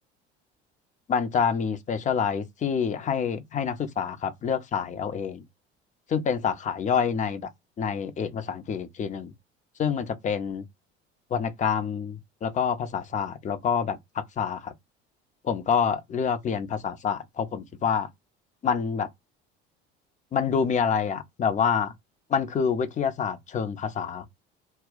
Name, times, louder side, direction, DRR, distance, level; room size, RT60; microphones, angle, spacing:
voice 1, 1.1-5.4 6.1-7.5 7.8-9.3 9.8-10.6 11.3-14.7 15.4-18.1 18.6-19.1 20.3-21.9 22.3-24.3, left 7 dB, 25° left, 0.5 m, -27 dB
2.1 x 2.1 x 3.7 m
figure-of-eight pair, 65°, 33 cm